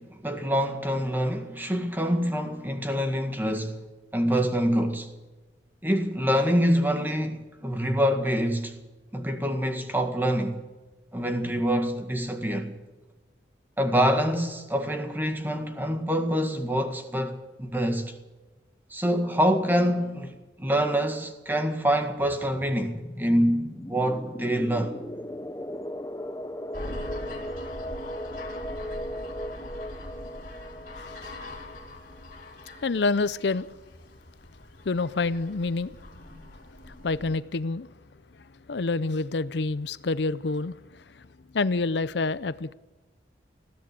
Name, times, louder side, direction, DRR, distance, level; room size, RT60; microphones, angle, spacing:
voice 1, 0.0-3.8 4.1-5.1 5.8-8.8 9.1-10.6 11.1-12.7 13.8-18.2 18.9-24.9, equal, 10° right, 1.9 m, -26 dB
sound 1, 22.2-32.7, equal, 15° left, 0.6 m, -38 dB
sound 2, 26.7-37.4, left 1 dB, 45° left, 3.7 m, -42 dB
voice 2, 31.0-31.3 32.8-33.7 34.8-36.0 36.9-37.9 38.7-41.2 41.5-42.7, left 3 dB, 65° left, 0.6 m, -28 dB
20.5 x 15.0 x 8.4 m
head